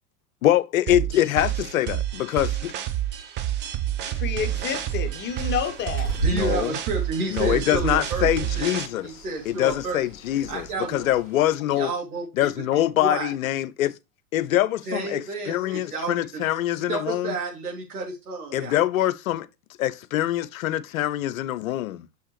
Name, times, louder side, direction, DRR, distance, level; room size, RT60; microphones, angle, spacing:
voice 1, 0.4-2.7 6.3-6.7 7.3-9.1 9.5-11.9 12.4-13.9 14.3-17.4 18.5-19.5 19.8-22.1, left 13 dB, 60° left, 0.6 m, -24 dB
sound 1, 0.9-8.9, right 12 dB, 25° right, 0.6 m, -29 dB
voice 2, 4.1-6.1, left 8 dB, 25° left, 0.9 m, -29 dB
Bird, 4.4-11.5, right 3 dB, 40° right, 3.3 m, -36 dB
voice 3, 6.2-8.3 8.5-8.7 9.0-10.0 10.5-11.1 11.7-13.3 14.9-16.4 16.9-18.7, right 3 dB, 65° right, 3.0 m, -31 dB
6.4 x 5.5 x 3.2 m
figure-of-eight pair, 90°, 47 cm